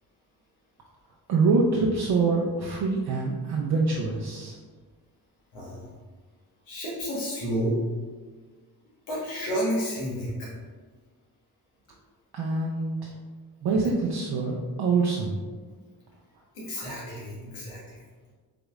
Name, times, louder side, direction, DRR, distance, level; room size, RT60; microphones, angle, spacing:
voice 1, 1.3-4.5 12.3-13.1 13.6-15.4, right 4 dB, 55° right, -2 dB, 0.7 m, -25 dB
voice 2, 5.5-5.9 6.7-7.8 9.1-10.5 16.5-18.0, equal, 85° left, -6 dB, 1.4 m, -31 dB
5.1 x 2.9 x 2.4 m, 1.4 s
hypercardioid pair, 40°, 46 cm